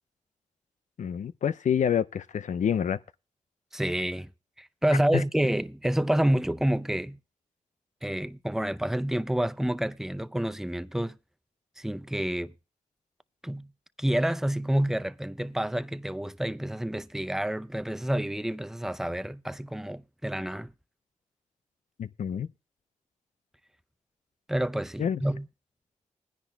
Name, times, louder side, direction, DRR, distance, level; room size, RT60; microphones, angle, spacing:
voice 1, 1.0-3.0 5.1-5.2 22.0-22.5 25.0-25.2, left 8 dB, 70° left, 0.5 m, -27 dB
voice 2, 3.7-4.3 4.6-7.2 8.0-11.2 11.8-12.5 13.4-13.7 14.0-20.7 24.5-25.5, right 1 dB, 5° right, 0.6 m, -28 dB
20.5 x 10.0 x 2.3 m
cardioid pair, 50°, 13 cm